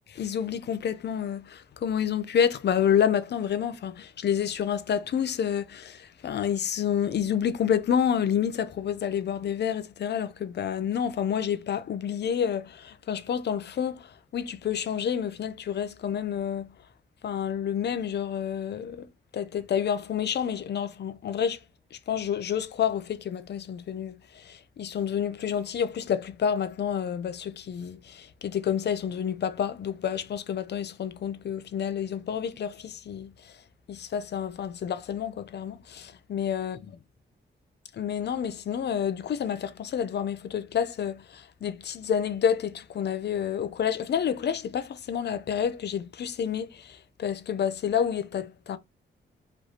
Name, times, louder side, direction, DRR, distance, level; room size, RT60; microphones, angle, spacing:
voice 1, 0.1-16.7 17.2-19.1 19.3-21.6 21.9-33.5 33.9-36.8 37.9-48.8, left 8 dB, 65° left, 0.6 m, -29 dB
5.1 x 3.1 x 2.9 m
wide cardioid pair, 155°, 19 cm